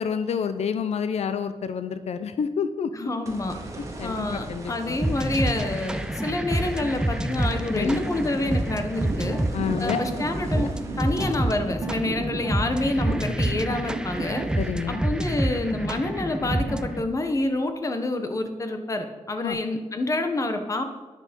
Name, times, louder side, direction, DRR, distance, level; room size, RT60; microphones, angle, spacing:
voice 1, 0.0-2.9 4.0-5.0 7.7-8.0 9.5-10.0 10.5-10.7 14.6-15.0 19.4-19.6, left 6 dB, 85° left, 11 dB, 0.7 m, -28 dB
voice 2, 2.9-3.5 4.0-9.4 9.8-10.7 11.0-14.4 14.9-20.8, left 2 dB, 30° left, 6 dB, 1.4 m, -28 dB
sound 1, 3.2-15.6 16.0-16.1 19.5-19.6, right 2 dB, 30° right, 2.5 m, -41 dB
sound 2, 5.0-17.0, right 1 dB, 5° right, 0.6 m, -28 dB
sound 3, 8.9-14.7, right 4 dB, 90° right, 1.8 m, -36 dB
12.5 x 10.5 x 5.4 m, 1.3 s
wide cardioid pair, 155°, 11 cm